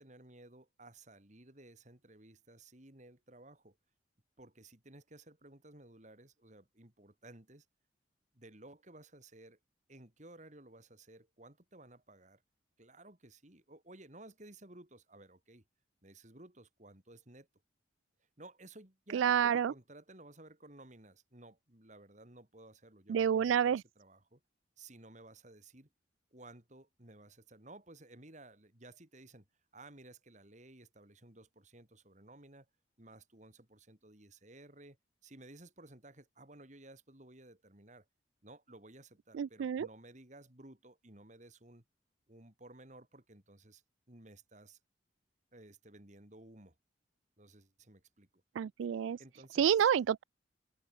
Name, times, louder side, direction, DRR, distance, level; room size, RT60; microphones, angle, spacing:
voice 1, 0.0-3.8 4.4-7.6 8.3-9.6 9.9-12.4 12.8-15.6 16.0-17.5 18.4-24.4 24.8-25.9 26.3-29.4 29.7-32.7 33.0-35.0 35.2-38.0 38.4-41.8 42.3-43.8 44.1-44.8 45.5-46.7 47.4-48.4 48.8-48.9 49.2-49.9, right 2 dB, 40° right, 3.1 m, -56 dB
voice 2, 19.1-19.7 23.1-23.8 39.4-39.9 48.6-49.2 49.6-50.2, right 8 dB, 80° right, 0.3 m, -29 dB
head